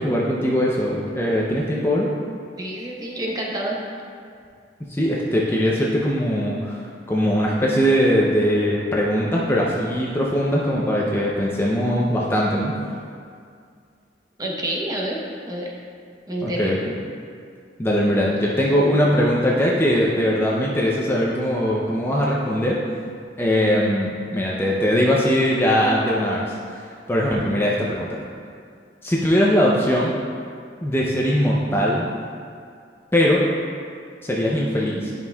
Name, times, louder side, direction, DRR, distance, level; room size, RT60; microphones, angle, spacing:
voice 1, 0.0-2.1 4.8-12.7 16.4-16.9 17.8-22.8 23.4-26.4 26.7-26.8 27.1-28.2 29.0-30.1 30.8-32.1 33.1-33.4 34.2-35.1, equal, 15° left, -4 dB, 0.5 m, -21 dB
voice 2, 2.6-3.8 14.4-15.2 15.5-15.7 16.3-16.7, right 1 dB, 20° right, -3 dB, 0.9 m, -28 dB
10.5 x 5.4 x 2.3 m, 2.2 s
head